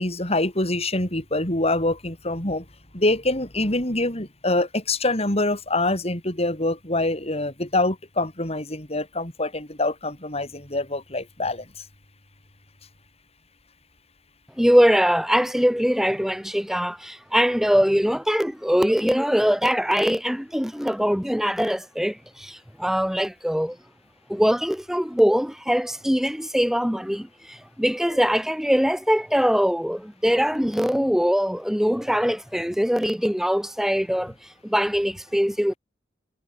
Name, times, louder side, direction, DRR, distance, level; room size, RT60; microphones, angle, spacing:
voice 1, 0.0-2.6 2.9-11.6, left 2 dB, 35° left, 7.7 m, -25 dB
voice 2, 14.6-23.8 24.3-34.3 34.6-35.7, equal, ahead, 2.8 m, -22 dB
head